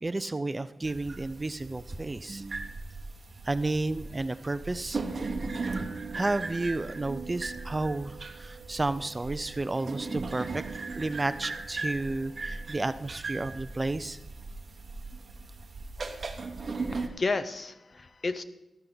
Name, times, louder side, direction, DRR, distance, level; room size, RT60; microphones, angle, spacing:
voice 1, 0.0-2.7 3.4-5.0 6.1-10.6 10.9-14.2 15.1-15.2, right 2 dB, 20° right, 13 dB, 0.4 m, -32 dB
sound 1, 0.8-17.1, right 3 dB, 40° right, 1.1 m, -38 dB
voice 2, 16.9-18.4, left 3 dB, 40° left, 12 dB, 0.7 m, -32 dB
12.5 x 12.0 x 3.9 m, 0.91 s
wide cardioid pair, 120°, 0 cm